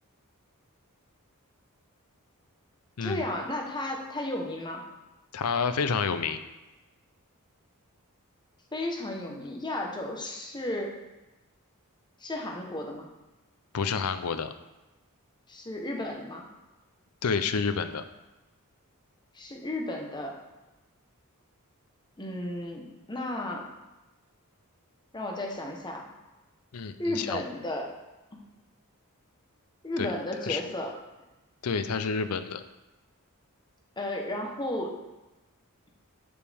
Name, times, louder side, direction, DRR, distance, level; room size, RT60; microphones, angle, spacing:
voice 1, 3.0-4.8 8.7-10.9 12.2-13.1 15.5-16.4 19.3-20.3 22.2-22.8 23.1-23.6 25.1-26.1 27.0-27.9 29.8-30.9 34.0-34.9, left 1 dB, 20° left, 1 dB, 1.0 m, -33 dB
voice 2, 5.3-6.4 13.7-14.5 17.2-18.0 26.7-27.4 30.0-30.1 30.5-30.6 31.6-32.6, left 5 dB, 80° left, 11 dB, 0.6 m, -29 dB
11.5 x 5.2 x 3.5 m, 1.1 s
head